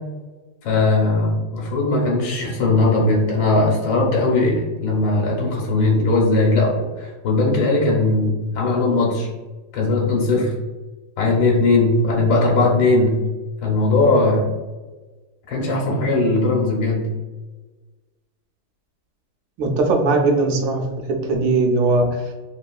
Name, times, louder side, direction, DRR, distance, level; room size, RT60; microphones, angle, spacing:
voice 1, 0.6-9.3 9.7-10.5 11.2-13.2 13.6-14.5 15.5-17.1, left 2 dB, 80° left, -2 dB, 1.4 m, -19 dB
voice 2, 19.6-20.8 21.2-22.2, right 3 dB, 80° right, 1 dB, 1.3 m, -19 dB
3.5 x 2.4 x 2.3 m, 1.2 s
omnidirectional pair, 2.1 m